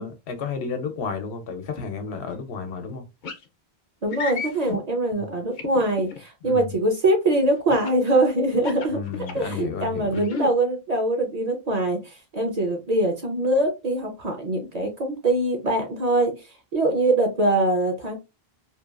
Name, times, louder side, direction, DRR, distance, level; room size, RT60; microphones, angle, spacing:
voice 1, 0.0-3.1 5.1-5.3 6.4-6.7 8.9-10.2, left 5 dB, 80° left, 0.9 m, -32 dB
sound 1, 3.2-3.4 4.1-4.8 5.6-6.2 7.7-8.0 8.5-9.6 10.1-10.5, left 5 dB, 55° left, 0.6 m, -32 dB
voice 2, 4.0-16.3 16.7-18.2, right 1 dB, 45° right, 0.6 m, -23 dB
2.8 x 2.2 x 2.3 m
omnidirectional pair, 1.1 m